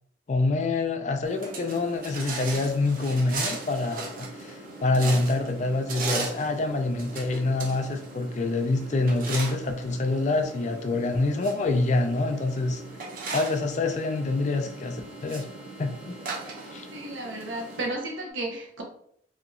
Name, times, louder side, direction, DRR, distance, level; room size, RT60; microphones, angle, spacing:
voice 1, 0.3-12.8 13.3-15.5 15.8-16.1 16.7-16.9, left 2 dB, 40° left, 6 dB, 0.3 m, -26 dB
sound 1, 1.2-17.9, right 3 dB, 50° right, 0.6 m, -38 dB
sound 2, 2.9-18.3, left 3 dB, 5° right, 0.6 m, -53 dB
voice 2, 16.9-18.8, right 2 dB, 90° right, 1 dB, 0.8 m, -33 dB
2.8 x 2.8 x 2.5 m, 0.66 s
head